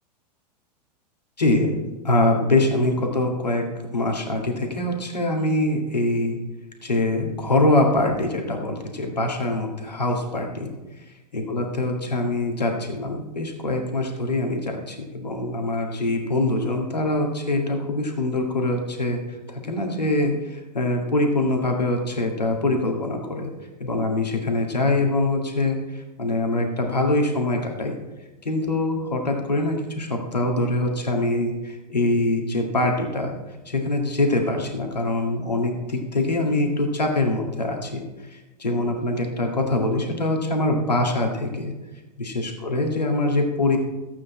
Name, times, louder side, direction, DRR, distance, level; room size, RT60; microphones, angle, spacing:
voice 1, 1.4-1.7 2.0-3.6 3.9-6.4 6.8-10.7 11.0-11.1 11.3-23.5 23.8-28.0 28.4-33.3 33.7-41.7 42.2-43.8, left 2 dB, 75° left, 2 dB, 2.0 m, -24 dB
15.0 x 8.6 x 4.3 m, 1.1 s
figure-of-eight pair, 95°, 21 cm